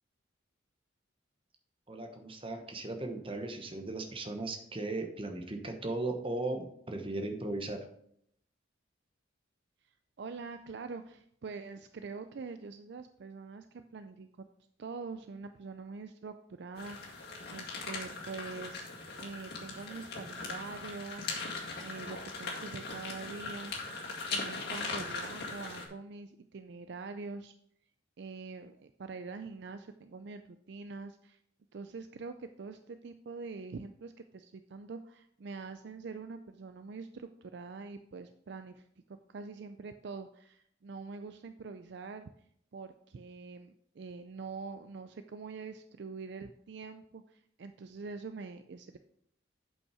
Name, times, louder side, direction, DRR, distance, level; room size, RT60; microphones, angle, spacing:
voice 1, 1.9-7.8, right 2 dB, 25° right, 5 dB, 1.0 m, -37 dB
voice 2, 9.8-14.3 14.8-18.8 19.2-23.7 24.3-27.5 28.2-31.4 31.7-42.3 42.7-49.0, right 4 dB, 55° right, 9 dB, 0.4 m, -44 dB
sound 1, 16.8-25.9, left 3 dB, 50° left, 2.0 m, -40 dB
8.3 x 5.5 x 4.8 m, 0.69 s
head